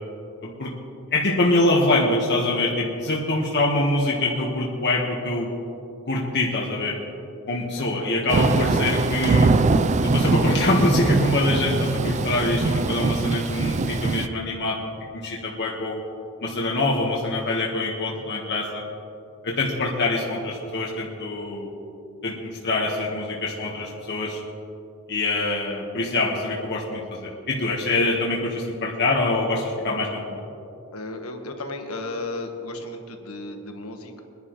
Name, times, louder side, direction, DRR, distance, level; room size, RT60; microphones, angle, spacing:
voice 1, 0.4-0.7 1.1-5.5 6.1-7.0 7.5-9.5 10.1-14.8 15.1-16.0 16.4-18.8 19.4-21.7 22.2-24.4 25.1-30.4, left 2 dB, 55° left, -3 dB, 1.4 m, -24 dB
Thunder / Rain, 8.3-14.3, right 3 dB, 35° right, 0.4 m, -22 dB
voice 2, 30.9-34.2, left 2 dB, 80° left, 4 dB, 1.4 m, -34 dB
22.5 x 10.5 x 3.1 m, 2.7 s
head